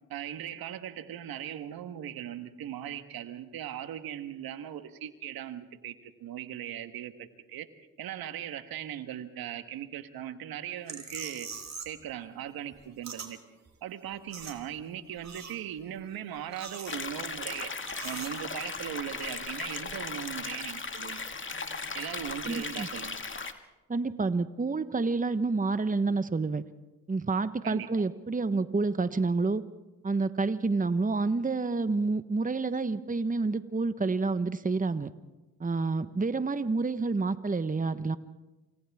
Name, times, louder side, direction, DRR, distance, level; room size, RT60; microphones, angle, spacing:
voice 1, 0.1-7.7 8.0-11.5 11.8-13.4 13.8-17.7 18.0-21.3 21.9-23.2 27.6-27.9, right 10 dB, 80° right, 9 dB, 1.6 m, -39 dB
sound 1, 10.9-12.0 12.3-13.3 13.7-13.8 14.0-14.9 15.2-15.9 16.4-17.4 17.9-18.3, right 5 dB, 50° right, 4.0 m, -42 dB
sound 2, 16.9-23.5, left 4 dB, 35° left, 2.2 m, -37 dB
voice 2, 22.5-22.9 23.9-26.6 27.1-29.6 30.0-35.1 35.6-38.2, right 3 dB, 25° right, 12 dB, 1.2 m, -28 dB
28.5 x 27.5 x 3.6 m, 1.1 s
supercardioid pair, 50°, 35 cm